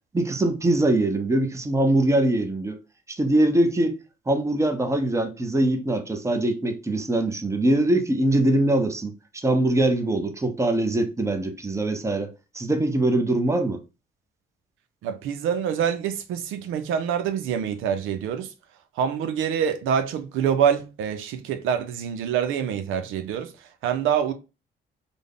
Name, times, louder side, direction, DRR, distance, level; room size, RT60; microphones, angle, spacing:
voice 1, 0.1-2.8 3.1-4.0 4.3-12.3 12.5-13.8, right 1 dB, 15° right, 0.7 m, -22 dB
voice 2, 15.0-18.5 19.0-23.5 23.8-24.3, right 8 dB, 90° right, 0.5 m, -25 dB
3.4 x 2.2 x 3.8 m
cardioid pair, 90°, 20 cm